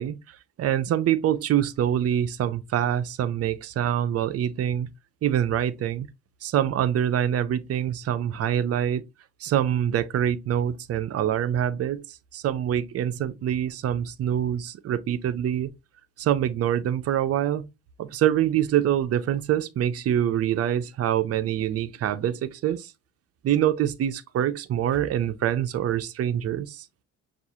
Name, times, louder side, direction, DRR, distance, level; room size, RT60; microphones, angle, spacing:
voice 1, 0.0-4.9 5.2-6.1 6.4-9.0 9.4-15.7 16.2-17.6 18.0-22.9 23.4-26.9, right 10 dB, 50° right, 0.5 m, -25 dB
5.9 x 2.4 x 2.7 m
cardioid pair, 90°, 30 cm